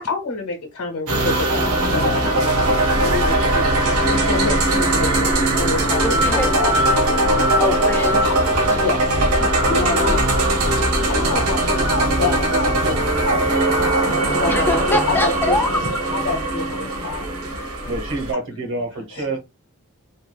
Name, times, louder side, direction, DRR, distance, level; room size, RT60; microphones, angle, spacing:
voice 1, 0.0-2.4 3.0-3.6 4.1-6.7 8.2-9.0 9.7-10.2 10.8-11.9 12.2-13.5 13.9-14.0 14.3-15.6 16.1-17.2 19.1-19.3, left 4 dB, 75° left, 0.8 m, -27 dB
sound 1, 1.1-18.3, right 1 dB, 85° right, 0.8 m, -19 dB
voice 2, 6.0-6.5 7.6-8.2 8.6-8.9 9.9-10.2 14.5-16.0, left 2 dB, 10° left, 0.3 m, -24 dB
voice 3, 17.8-19.4, right 2 dB, 55° right, 0.8 m, -27 dB
2.9 x 2.3 x 2.2 m
head